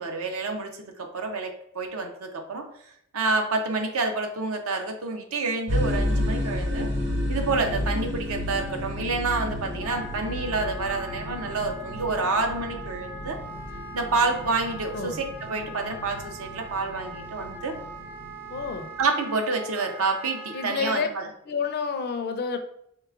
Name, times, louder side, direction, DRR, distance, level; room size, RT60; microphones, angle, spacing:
voice 1, 0.0-2.6 3.1-6.9 7.3-13.4 13.9-17.7 19.0-21.3, right 3 dB, 65° right, 4 dB, 0.6 m, -28 dB
sound 1, 5.7-19.0, left 1 dB, 50° right, 1.5 m, -32 dB
Wind instrument woodwind instrument, 9.8-21.1, right 2 dB, 10° right, 0.5 m, -42 dB
voice 2, 18.5-18.9 20.5-21.1 21.5-22.6, left 5 dB, 45° left, 7 dB, 0.4 m, -29 dB
4.6 x 3.2 x 2.4 m, 0.72 s
head